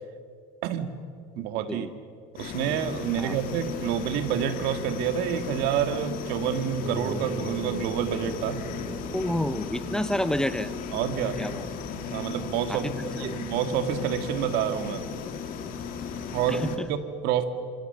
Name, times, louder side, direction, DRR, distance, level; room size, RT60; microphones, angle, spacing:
voice 1, 0.6-0.9 1.4-1.9 2.3-8.7 10.9-11.4 12.1-15.1 16.3-17.4, right 9 dB, 60° right, 9 dB, 1.9 m, -28 dB
sound 1, 2.3-16.8, left 6 dB, 50° left, 2.8 m, -36 dB
sound 2, 6.8-12.1, right 6 dB, 35° right, 4.8 m, -40 dB
voice 2, 9.1-10.7 11.4-11.7 12.7-12.9 13.2-13.4 16.5-16.9, left 1 dB, 5° left, 12 dB, 0.8 m, -29 dB
27.0 x 26.5 x 6.9 m, 2.3 s
cardioid pair, 155°, 19 cm